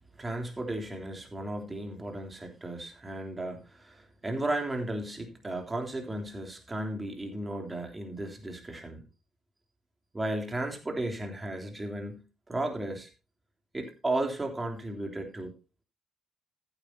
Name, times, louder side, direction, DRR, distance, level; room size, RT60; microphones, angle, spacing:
voice 1, 0.2-9.0 10.1-12.2 12.5-13.1 13.7-15.5, right 1 dB, 25° right, 3 dB, 3.4 m, -34 dB
14.5 x 8.9 x 2.8 m, 0.29 s
hypercardioid pair, 45°, 0 cm